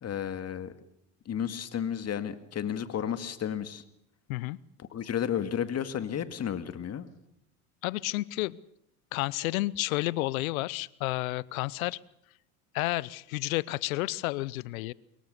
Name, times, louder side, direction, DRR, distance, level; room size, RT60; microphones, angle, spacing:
voice 1, 0.0-0.7 1.3-3.8 4.8-7.1, left 9 dB, 35° left, 11 dB, 2.2 m, -32 dB
voice 2, 7.8-8.6 9.1-12.0 12.7-14.9, left 19 dB, 80° left, 23 dB, 0.8 m, -31 dB
24.5 x 22.5 x 6.7 m, 0.73 s
hypercardioid pair, 85°, 41 cm